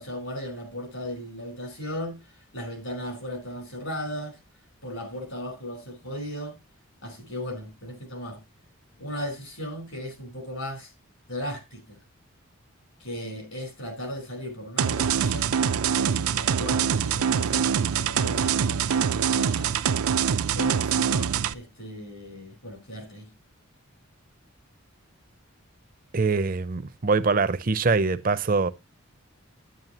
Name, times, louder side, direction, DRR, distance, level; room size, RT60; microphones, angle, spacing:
voice 1, 0.0-4.4 4.8-6.6 7.0-8.4 9.0-10.9 11.3-12.0 13.0-15.5 16.0-19.7 20.5-23.3, equal, 70° left, 4.8 m, -36 dB
sound 1, 14.8-21.5, right 7 dB, 85° right, 0.5 m, -24 dB
voice 2, 26.1-28.7, right 4 dB, 40° right, 0.5 m, -23 dB
9.4 x 9.2 x 2.9 m
head